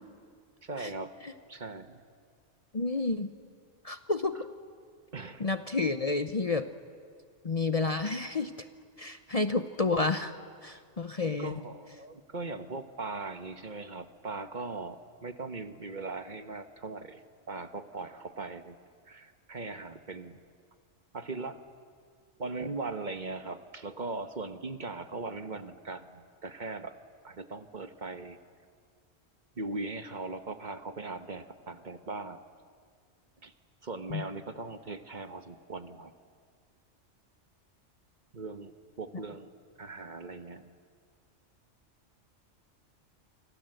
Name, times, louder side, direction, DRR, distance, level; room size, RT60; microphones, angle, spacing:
voice 1, 0.6-1.1 1.5-2.0 5.1-5.4 11.4-17.2 17.5-18.8 19.1-20.4 21.1-21.6 22.4-26.9 27.2-28.4 29.6-32.4 33.4-33.5 33.8-36.1 38.3-39.5 39.8-40.7, right 3 dB, 40° right, 9 dB, 1.2 m, -39 dB
voice 2, 2.7-3.3 3.8-4.4 5.4-6.7 7.4-8.7 9.0-10.3 10.6-11.5 34.1-34.2, left 3 dB, 35° left, 10 dB, 0.8 m, -30 dB
29.0 x 25.5 x 7.9 m, 2.1 s
omnidirectional pair, 1.2 m